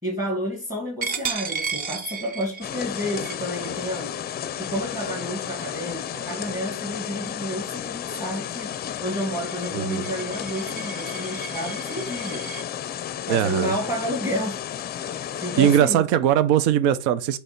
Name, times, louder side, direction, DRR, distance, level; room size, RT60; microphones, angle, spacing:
voice 1, 0.0-8.7 9.0-12.5 13.3-14.6 14.9-16.0, equal, 10° right, 2.2 m, -30 dB
Coin (dropping), 1.0-6.4 6.9-7.1 7.5-12.6, right 5 dB, 25° right, 0.8 m, -35 dB
sound 1, 2.6-15.8, left 10 dB, 25° left, 0.6 m, -33 dB
voice 2, 9.7-10.1 13.3-13.7 15.6-17.4, right 10 dB, 70° right, 0.8 m, -20 dB
7.9 x 3.4 x 5.7 m
supercardioid pair, 135°, 37 cm